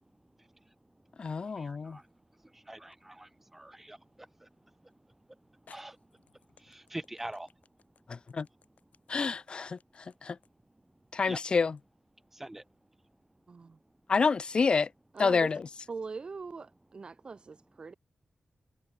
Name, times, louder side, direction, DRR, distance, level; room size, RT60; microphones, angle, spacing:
voice 1, 0.0-7.6 11.3-11.4 12.3-12.7, right 1 dB, 10° right, 2.9 m, -47 dB
voice 2, 1.2-2.0 8.1-8.5 9.1-9.8 10.2-10.4 11.1-11.8 14.1-14.9 15.2-15.6, left 5 dB, 35° left, 0.4 m, -28 dB
sound 1, 1.6-2.2 2.9-3.0 4.9-5.0 5.7-11.9, left 6 dB, 65° left, 5.4 m, -63 dB
voice 3, 13.5-13.8 15.1-15.5 15.9-17.9, right 4 dB, 35° right, 1.0 m, -42 dB
wide cardioid pair, 175°, 3 cm